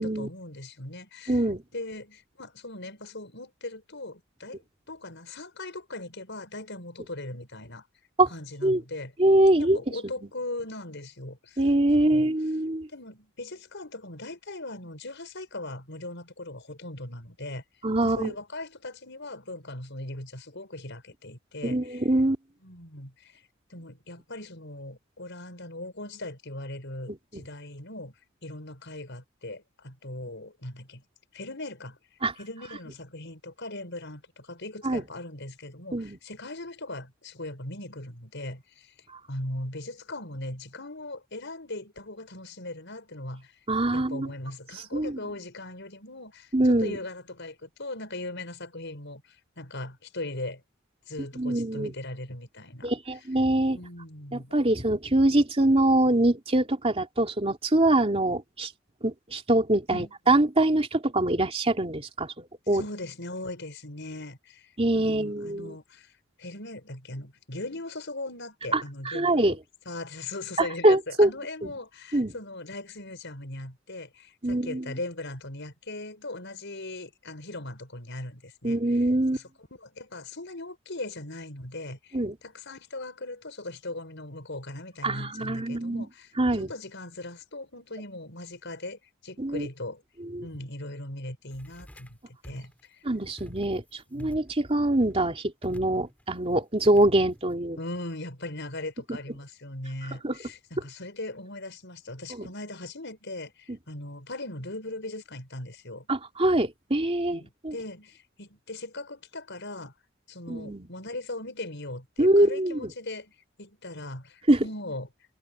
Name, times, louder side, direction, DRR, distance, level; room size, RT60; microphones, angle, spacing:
voice 1, 0.0-1.4 1.7-4.6 4.9-7.8 8.3-9.1 9.6-11.6 12.0-12.3 12.9-17.6 18.0-22.1 22.6-23.4 23.7-28.1 28.4-31.0 31.3-32.0 32.4-38.9 39.3-43.5 43.9-46.5 46.8-49.2 49.6-50.6 51.1-52.9 53.7-54.7 59.9-60.1 62.7-66.1 66.4-69.5 69.8-79.0 79.3-86.3 86.6-90.0 90.4-92.2 92.4-93.0 94.1-94.4 97.8-106.1 107.3-109.9 110.3-113.3 113.6-115.1, left 2 dB, 60° left, 6.9 m, -39 dB
voice 2, 1.3-1.6 8.2-8.3 8.6-8.8 9.2-9.8 11.6-12.9 17.8-18.3 21.6-22.4 27.1-27.4 32.2-32.3 34.8-35.0 35.9-36.2 43.7-44.3 44.9-45.2 46.5-47.0 51.4-51.9 52.8-53.8 54.3-58.7 59.0-62.8 64.8-65.8 68.7-68.8 69.0-69.6 70.6-71.3 72.1-72.3 74.4-74.9 78.6-79.4 82.1-82.4 85.0-86.1 86.4-86.7 89.4-89.7 90.3-90.4 93.0-97.8 100.2-100.4 102.3-102.5 103.7-103.8 106.1-107.7 110.5-110.9 112.2-112.9 114.5-114.6, right 1 dB, 30° right, 2.9 m, -24 dB
sound 1, 91.5-92.2 92.4-92.8 93.4-93.9 94.2-95.0 95.6-96.2 96.8-97.5, equal, 5° left, 7.6 m, -48 dB
head